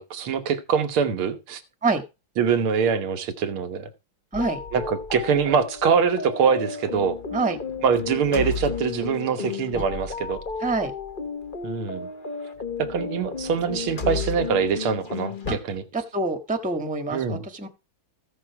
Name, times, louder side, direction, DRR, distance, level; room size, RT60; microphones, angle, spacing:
voice 1, 0.0-1.6 2.4-3.9 4.7-7.2 7.8-10.4 11.6-12.1 12.8-15.8 17.1-17.4, right 6 dB, 90° right, 2.1 m, -24 dB
sound 1, 4.3-15.6, left 5 dB, 30° left, 1.2 m, -33 dB
voice 2, 10.6-10.9 15.5-15.6 15.9-17.7, right 3 dB, 5° right, 1.2 m, -26 dB
15.0 x 6.4 x 4.8 m
omnidirectional pair, 2.3 m